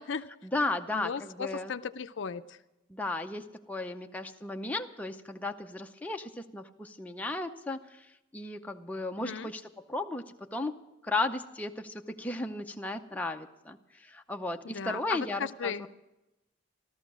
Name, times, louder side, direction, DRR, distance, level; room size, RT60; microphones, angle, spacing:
voice 1, 0.4-1.7 2.9-8.1 8.3-10.2 10.5-10.8 11.0-15.9, left 2 dB, 10° left, 4 dB, 0.6 m, -35 dB
voice 2, 0.9-2.6 9.2-9.5 14.6-15.9, left 6 dB, 65° left, 11 dB, 0.5 m, -36 dB
14.0 x 13.5 x 6.1 m, 0.97 s
head